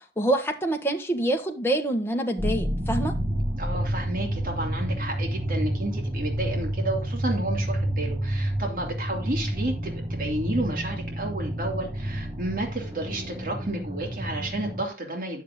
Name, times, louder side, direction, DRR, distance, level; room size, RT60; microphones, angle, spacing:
voice 1, 0.2-3.1, right 1 dB, 15° left, 1.4 m, -26 dB
sound 1, 2.4-14.8, right 1 dB, 25° right, 1.0 m, -29 dB
voice 2, 3.5-15.4, right 1 dB, 50° right, 2.8 m, -31 dB
10.0 x 7.3 x 3.8 m
head